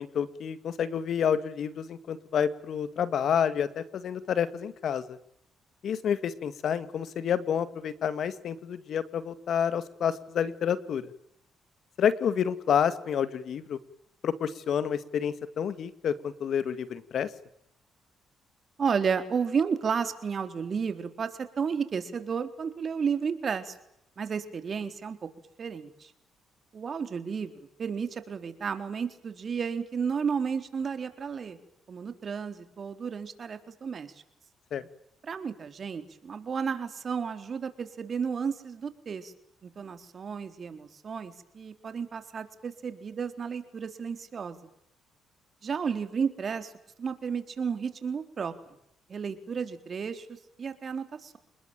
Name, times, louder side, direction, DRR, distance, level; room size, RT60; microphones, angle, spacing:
voice 1, 0.0-5.2 5.8-11.1 12.0-13.8 14.2-17.3 34.7-34.8, left 8 dB, 65° left, 14 dB, 2.1 m, -29 dB
voice 2, 18.8-21.3 21.6-23.8 24.2-25.2 25.6-26.1 26.7-27.5 27.8-31.6 31.9-34.1 35.2-39.3 39.6-44.6 45.6-46.7 47.0-48.5 49.1-50.3 50.6-51.4, right 6 dB, 45° right, 9 dB, 3.9 m, -32 dB
28.5 x 20.5 x 9.1 m, 0.74 s
cardioid pair, 90°, 0 cm